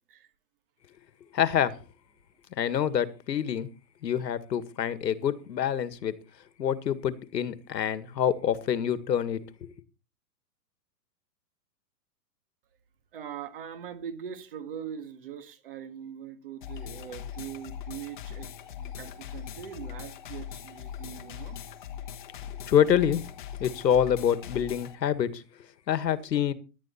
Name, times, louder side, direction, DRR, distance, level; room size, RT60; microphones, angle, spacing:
voice 1, 1.3-1.7 2.6-3.7 4.0-6.1 6.6-9.4 22.7-23.2 23.6-25.4 25.9-26.5, left 9 dB, 90° left, 1.8 m, -26 dB
voice 2, 13.1-18.5 18.8-21.6, right 8 dB, 35° right, 1.7 m, -41 dB
sound 1, 16.6-25.0, left 9 dB, 30° left, 1.2 m, -41 dB
17.0 x 11.5 x 4.3 m
hypercardioid pair, 180°, 49 cm